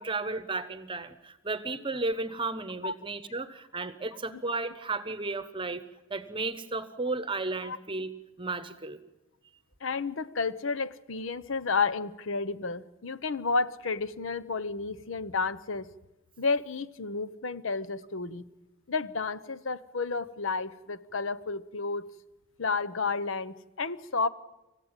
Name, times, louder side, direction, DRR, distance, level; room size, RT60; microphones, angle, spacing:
voice 1, 0.0-5.8 6.1-8.1 8.4-9.0, right 3 dB, 25° right, 12 dB, 1.1 m, -33 dB
voice 2, 9.8-15.9 16.4-18.4 18.9-22.0 22.6-24.3, left 4 dB, 70° left, 15 dB, 0.9 m, -31 dB
27.0 x 15.5 x 9.0 m, 1.0 s
head